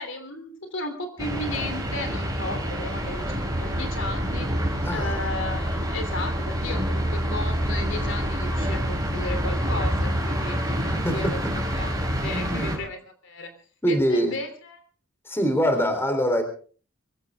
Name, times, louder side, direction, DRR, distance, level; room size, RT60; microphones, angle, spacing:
voice 1, 0.0-4.6 4.9-11.4 11.7-12.0 12.2-13.5 13.9-14.8, left 2 dB, 65° left, 7 dB, 3.2 m, -35 dB
sound 1, 1.2-12.8, equal, 20° right, 4.7 m, -27 dB
voice 2, 4.8-5.1 11.0-11.5 12.3-12.7 13.8-14.3 15.3-16.4, equal, 10° left, 7 dB, 3.5 m, -24 dB
24.0 x 15.5 x 3.6 m, 0.41 s
head